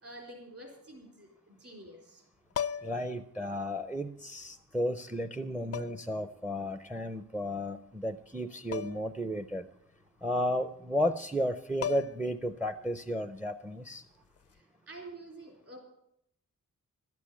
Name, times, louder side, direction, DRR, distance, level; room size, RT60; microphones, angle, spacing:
voice 1, 0.0-2.2 14.5-15.8, right 1 dB, 45° right, 1 dB, 4.1 m, -48 dB
sound 1, 2.5-3.1 4.4-4.5 5.7-6.2 8.7-9.1 9.5-9.6 11.4-11.5 11.8-12.4 14.4-14.6, left 8 dB, 50° left, 0.4 m, -36 dB
voice 2, 2.8-9.7 10.2-14.0, equal, 5° right, 9 dB, 0.5 m, -33 dB
12.5 x 8.4 x 8.5 m, 0.75 s
wide cardioid pair, 160°, 31 cm